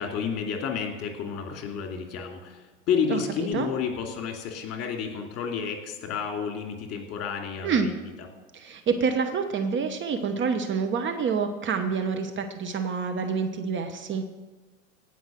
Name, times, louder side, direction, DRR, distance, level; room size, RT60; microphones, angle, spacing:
voice 1, 0.0-2.6 2.9-7.9, left 6 dB, 35° left, 2 dB, 2.7 m, -30 dB
voice 2, 3.1-3.7 7.6-7.9 8.5-14.2, right 5 dB, 30° right, 6 dB, 1.0 m, -27 dB
17.0 x 5.7 x 7.6 m, 1.2 s
hypercardioid pair, 95°, 41 cm